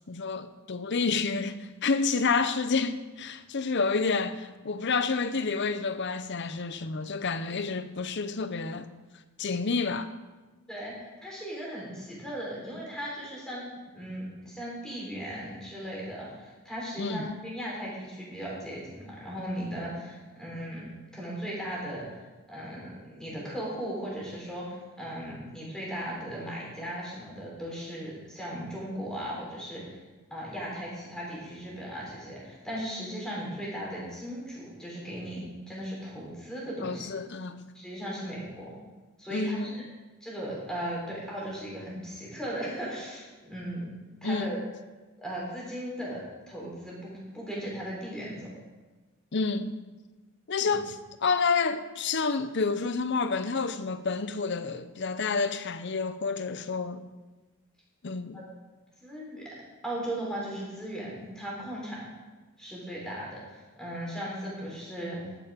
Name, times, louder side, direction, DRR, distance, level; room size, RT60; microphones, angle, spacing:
voice 1, 0.1-8.9 9.4-10.1 17.0-17.4 36.8-37.6 39.3-39.8 44.2-44.5 49.3-49.8 50.5-57.0 58.0-58.4, left 4 dB, 50° left, 0.7 m, -29 dB
voice 2, 10.7-13.6 13.9-20.8 21.1-22.2 22.5-30.0 30.3-37.1 37.7-38.8 39.2-39.8 40.2-43.9 44.2-44.6 45.2-48.5 50.6-50.8 58.3-58.4 59.0-59.5 59.8-62.0 62.6-65.2, equal, 5° left, 4.4 m, -37 dB
12.0 x 10.0 x 5.2 m
head